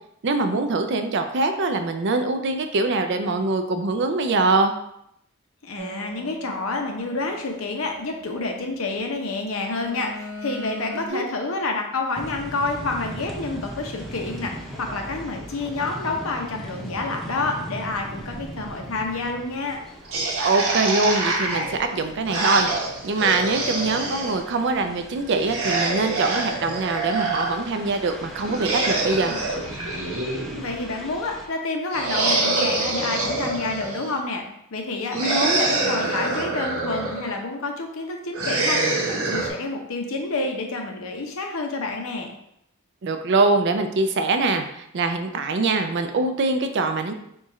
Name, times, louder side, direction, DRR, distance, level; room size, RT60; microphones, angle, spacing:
voice 1, 0.2-4.7 11.1-11.3 20.4-29.3 35.1-35.6 43.0-47.1, right 3 dB, 55° right, 7 dB, 0.4 m, -23 dB
voice 2, 5.6-14.5 14.8-19.8 30.5-34.4 34.7-38.8 39.1-42.3, left 3 dB, 70° left, 3 dB, 0.7 m, -28 dB
sound 1, 5.8-8.7 9.4-11.1, equal, 35° right, 1.3 m, -40 dB
sound 2, 12.1-31.5, equal, ahead, 0.5 m, -39 dB
sound 3, 20.1-24.4 25.4-27.6 28.4-30.8 31.9-34.1 35.1-37.3 38.3-39.5, right 2 dB, 85° right, 1.1 m, -25 dB
4.5 x 2.4 x 4.2 m, 0.76 s
head